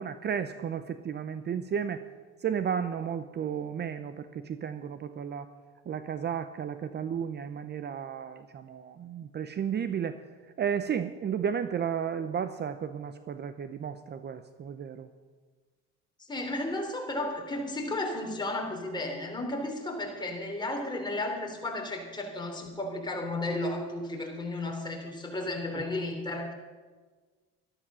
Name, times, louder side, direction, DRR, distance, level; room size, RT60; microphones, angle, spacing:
voice 1, 0.0-2.0 2.4-5.5 5.9-10.2 10.6-15.1 25.7-25.9, right 8 dB, 35° right, 11 dB, 0.7 m, -33 dB
voice 2, 16.3-26.5, left 2 dB, 15° left, 1 dB, 3.5 m, -33 dB
13.0 x 13.0 x 6.3 m, 1.4 s
cardioid pair, 105°, 30 cm